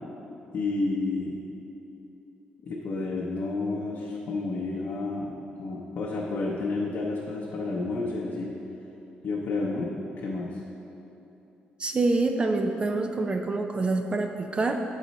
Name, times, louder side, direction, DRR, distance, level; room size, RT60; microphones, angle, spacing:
voice 1, 0.5-1.4 2.6-8.6 9.2-10.6, left 3 dB, 60° left, -4 dB, 0.7 m, -30 dB
voice 2, 11.8-14.8, right 3 dB, 30° right, 5 dB, 0.4 m, -26 dB
7.3 x 4.0 x 5.2 m, 2.9 s
cardioid pair, 95°, 3 cm